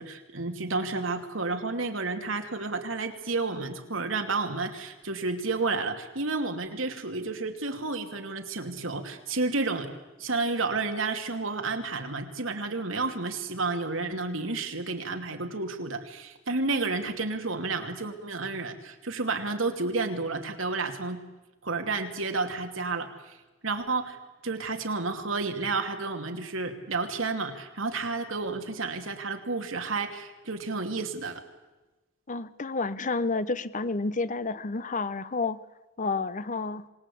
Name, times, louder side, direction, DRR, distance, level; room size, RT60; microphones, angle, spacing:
voice 1, 0.0-9.9 10.2-21.2 21.6-23.4 23.6-24.2 24.4-31.4, right 3 dB, 70° right, 5 dB, 2.7 m, -31 dB
voice 2, 32.3-35.6 36.0-36.9, left 3 dB, 40° left, 14 dB, 0.9 m, -30 dB
26.0 x 19.5 x 8.6 m, 1.1 s
head